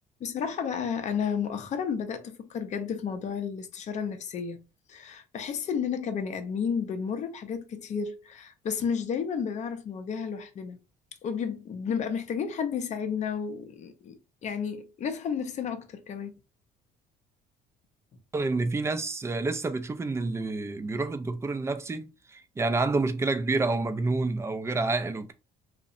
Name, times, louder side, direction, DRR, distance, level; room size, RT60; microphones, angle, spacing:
voice 1, 0.2-4.6 4.9-10.8 11.2-16.3, left 6 dB, 45° left, 0.5 m, -32 dB
voice 2, 18.3-25.3, right 3 dB, 15° right, 0.3 m, -28 dB
2.6 x 2.0 x 2.4 m
cardioid pair, 110°, 17 cm